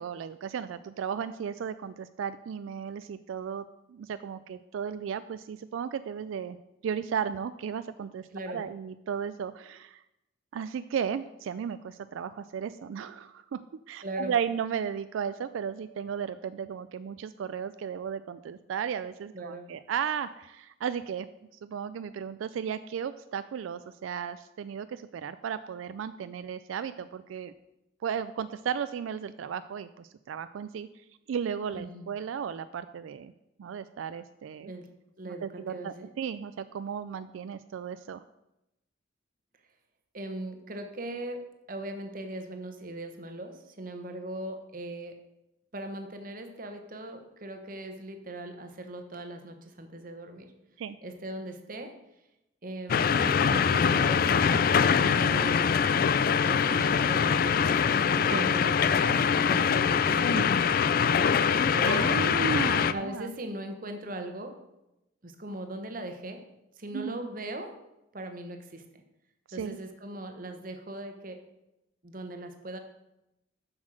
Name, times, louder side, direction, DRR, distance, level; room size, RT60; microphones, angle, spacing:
voice 1, 0.0-6.6 6.8-10.0 10.5-13.6 13.9-21.3 21.6-27.5 28.0-30.9 31.3-33.3 33.6-34.7 35.2-38.2 50.8-51.0 55.2-55.4 58.2-58.5 60.1-60.5 61.2-61.4 61.9-63.3 66.9-67.3 69.5-69.8, right 7 dB, 85° right, 12 dB, 0.3 m, -35 dB
voice 2, 8.3-8.6 14.0-14.3 19.3-19.7 31.7-32.1 34.6-34.9 35.2-36.1 40.1-45.2 45.7-50.5 51.0-51.9 52.6-54.6 55.1-55.7 56.5-59.2 59.5-60.3 60.9-62.0 62.9-64.6 65.2-66.4 66.8-67.8 68.1-69.0 69.5-71.4 72.0-72.8, right 1 dB, 45° right, 6 dB, 1.0 m, -39 dB
sound 1, 52.9-62.9, left 6 dB, 45° left, 0.3 m, -23 dB
7.3 x 6.3 x 6.2 m, 0.91 s
head